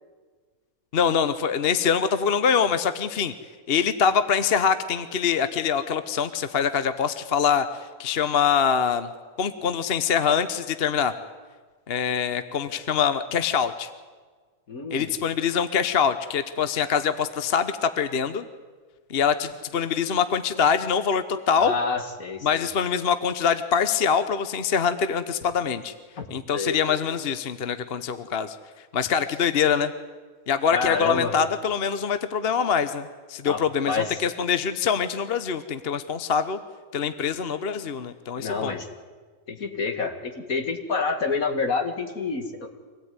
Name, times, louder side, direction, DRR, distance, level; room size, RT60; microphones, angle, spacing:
voice 1, 0.9-3.3 3.7-7.7 8.0-9.1 9.4-11.1 11.9-13.9 14.9-18.4 19.1-21.7 22.4-25.9 26.3-28.6 28.9-29.9 30.5-36.6 36.9-38.7, left 7 dB, 45° left, 11 dB, 1.0 m, -24 dB
voice 2, 14.7-15.1 21.6-22.7 26.5-26.8 30.7-31.3 33.5-34.2 38.4-38.9 39.5-42.7, left 4 dB, 70° left, 6 dB, 2.6 m, -28 dB
25.0 x 17.0 x 9.6 m, 1.5 s
omnidirectional pair, 1.6 m